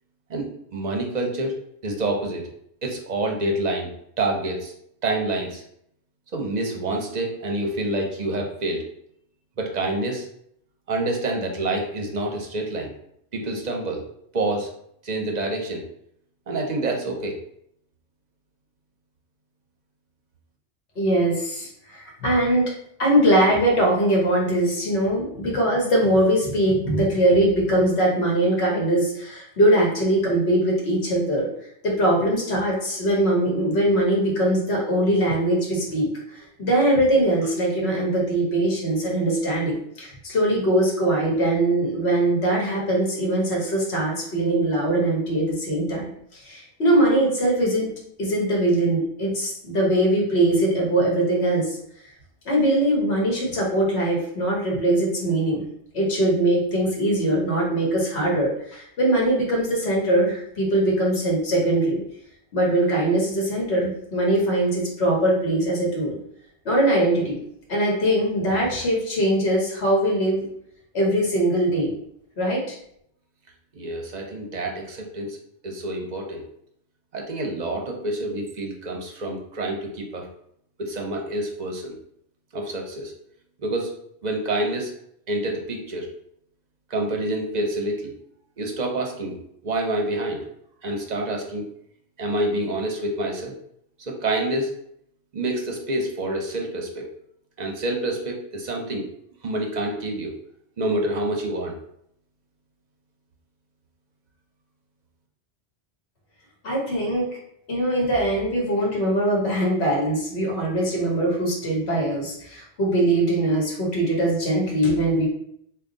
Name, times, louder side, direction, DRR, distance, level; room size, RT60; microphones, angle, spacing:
voice 1, 0.7-1.5 1.8-2.4 2.8-3.9 4.2-4.7 5.0-5.6 6.3-8.8 9.6-10.3 10.9-12.9 13.3-14.0 14.3-14.7 15.0-15.8 16.5-17.4 73.7-75.4 75.6-76.4 77.1-80.3 80.8-81.9 82.5-83.1 83.6-83.9 84.2-84.9 85.3-86.1 86.9-88.1 88.6-89.4 89.6-90.4 90.8-91.7 92.2-93.5 94.0-94.7 95.3-97.0 97.6-99.0 99.4-100.3 100.8-101.8, right 2 dB, 45° right, 1 dB, 0.6 m, -27 dB
voice 2, 21.0-22.7 23.0-31.5 31.8-36.1 36.3-47.9 48.2-51.8 52.4-55.6 55.9-62.0 62.5-66.2 66.6-67.4 67.7-70.4 70.9-71.9 72.4-72.7 106.6-107.3 107.7-115.3, right 1 dB, 70° left, -2 dB, 1.4 m, -21 dB
3.5 x 2.2 x 3.8 m, 0.72 s
omnidirectional pair, 1.1 m